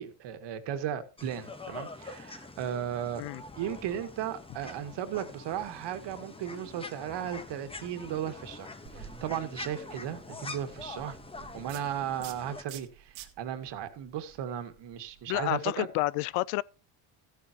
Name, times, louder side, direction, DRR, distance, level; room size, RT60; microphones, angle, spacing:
voice 1, 0.0-3.2 3.6-11.2 11.5-15.9, right 10 dB, 60° right, 2.0 m, -36 dB
sound 1, 1.2-12.6, left 3 dB, 10° left, 1.1 m, -45 dB
sound 2, 8.9-15.5, right 11 dB, 85° right, 1.9 m, -51 dB
voice 2, 15.3-16.6, left 19 dB, 85° left, 0.6 m, -30 dB
14.5 x 9.8 x 3.0 m
cardioid pair, 120°, 47 cm